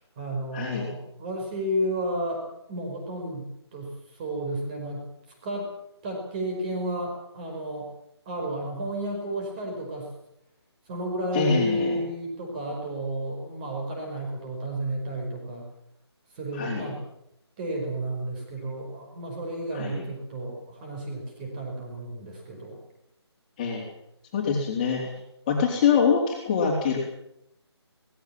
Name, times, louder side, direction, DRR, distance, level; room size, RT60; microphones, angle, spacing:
voice 1, 0.0-2.4 2.7-5.1 5.4-5.7 6.0-7.9 8.2-10.1 10.9-15.6 16.3-17.0 17.6-22.8, right 1 dB, 20° right, 1 dB, 5.1 m, -32 dB
voice 2, 0.5-0.9 11.3-12.0 16.5-16.9 19.7-20.1 23.6-23.8 24.3-25.1 25.5-27.0, left 6 dB, 20° left, -2 dB, 4.0 m, -24 dB
19.0 x 16.0 x 8.8 m, 0.79 s
figure-of-eight pair, 170°, 14 cm